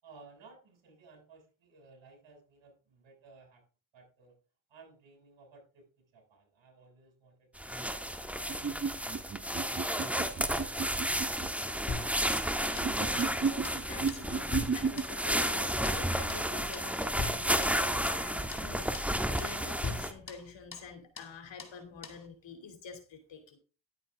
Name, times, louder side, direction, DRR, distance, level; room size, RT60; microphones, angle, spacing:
voice 1, 0.0-3.6 3.9-4.3 4.7-8.9, right 4 dB, 70° right, 2 dB, 6.7 m, -58 dB
sound 1, 7.6-20.1, equal, 5° right, 1.5 m, -32 dB
sound 2, 8.5-11.5 12.7-15.0, right 5 dB, 30° right, 1.2 m, -33 dB
sound 3, 11.9-12.9 13.2-13.4 13.6-13.8 14.1-15.6 15.8-16.0 16.3-16.5 16.7-16.9 17.2-18.2 18.5-18.7 18.9-19.1 19.4-19.6 19.8-20.9 21.2-21.3 21.6-21.8 22.0-22.2, left 4 dB, 45° left, 2.4 m, -41 dB
voice 2, 12.7-23.6, left 5 dB, 70° left, 5 dB, 2.8 m, -47 dB
11.0 x 9.8 x 3.5 m, 0.35 s
supercardioid pair, 60°, 46 cm